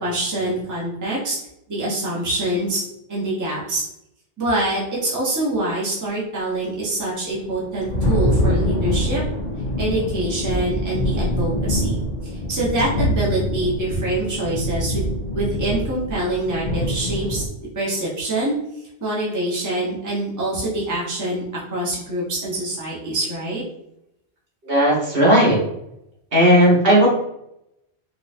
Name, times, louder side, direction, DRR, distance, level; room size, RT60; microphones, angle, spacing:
voice 1, 0.0-1.4 1.7-2.8 3.1-3.8 4.4-9.2 9.8-15.0 15.3-17.4 17.7-18.5 19.0-23.6, right 1 dB, 15° right, -7 dB, 0.9 m, -25 dB
Thunder, 7.3-17.5, equal, 55° left, 0.6 m, -24 dB
voice 2, 24.6-25.6 26.3-27.1, equal, 55° right, -6 dB, 1.5 m, -15 dB
4.0 x 2.4 x 2.6 m, 0.81 s
omnidirectional pair, 1.2 m